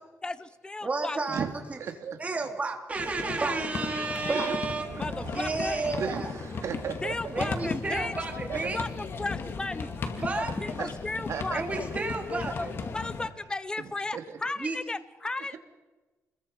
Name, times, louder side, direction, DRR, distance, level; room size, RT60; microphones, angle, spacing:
voice 1, 0.2-1.2 5.0-5.8 7.0-8.1 8.7-10.0 10.4-11.9 12.6-15.6, left 2 dB, 15° left, 14 dB, 0.8 m, -35 dB
voice 2, 0.8-1.8 2.2-4.8 5.3-6.3 7.3-8.8 10.2-10.5 11.5-12.7 14.6-14.8, right 3 dB, 25° right, 3 dB, 3.3 m, -31 dB
voice 3, 1.8-2.2 4.3-4.6 4.9-7.4 8.5-8.8 10.8-12.0 13.8-14.4 15.4-15.6, right 6 dB, 65° right, 5 dB, 3.0 m, -36 dB
sound 1, 3.0-13.3, left 4 dB, 45° left, 2.3 m, -36 dB
28.5 x 22.0 x 5.5 m, 1.2 s
cardioid pair, 140°, 5 cm